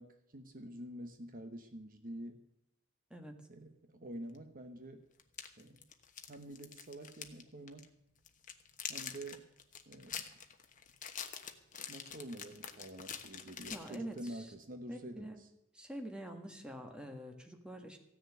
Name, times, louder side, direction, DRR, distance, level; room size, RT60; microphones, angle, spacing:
voice 1, 0.0-2.5 3.5-5.1 5.6-5.9 6.3-7.9 8.9-9.5 9.9-10.3 11.9-15.5, right 1 dB, 45° right, 7 dB, 1.0 m, -47 dB
sound 1, 4.3-4.4 5.2-7.4 7.7-7.9 8.3-14.3, left 8 dB, 40° left, 1.2 m, -45 dB
voice 2, 13.7-14.5 14.9-15.4 15.7-18.0, right 1 dB, 5° right, 3 dB, 1.7 m, -46 dB
15.5 x 6.8 x 9.3 m, 0.81 s
head